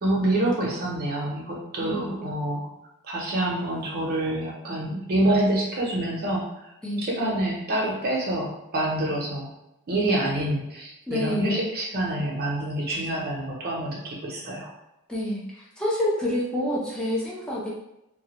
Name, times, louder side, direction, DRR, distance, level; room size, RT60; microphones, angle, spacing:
voice 1, 0.0-2.7 3.0-6.4 7.0-9.5 9.9-14.7, right 1 dB, 45° right, -3 dB, 0.6 m, -27 dB
voice 2, 1.8-2.1 6.8-7.0 11.1-11.6 15.1-17.7, left 1 dB, 5° left, -6 dB, 0.5 m, -28 dB
2.2 x 2.0 x 2.9 m, 0.88 s
head